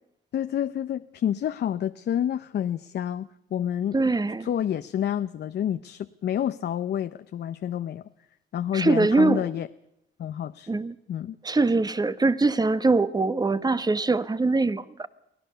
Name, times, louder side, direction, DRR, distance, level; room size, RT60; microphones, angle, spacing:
voice 1, 0.3-4.0 4.4-8.0 8.5-9.7 10.2-10.7 11.1-11.4, left 10 dB, 55° left, 0.7 m, -28 dB
voice 2, 3.9-4.5 8.7-9.5 10.7-10.9 11.4-15.1, right 3 dB, 20° right, 1.1 m, -23 dB
23.5 x 16.5 x 6.8 m
cardioid pair, 90°, 20 cm